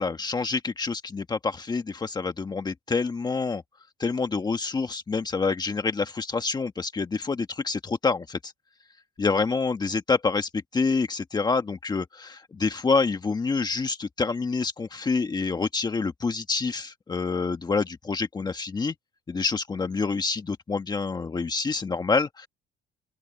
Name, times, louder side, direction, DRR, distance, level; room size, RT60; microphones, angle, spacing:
voice 1, 0.0-3.6 4.0-8.5 9.2-18.9 19.3-22.5, left 4 dB, 25° left, 1.4 m, -27 dB
open air
cardioid pair, 110°, 17 cm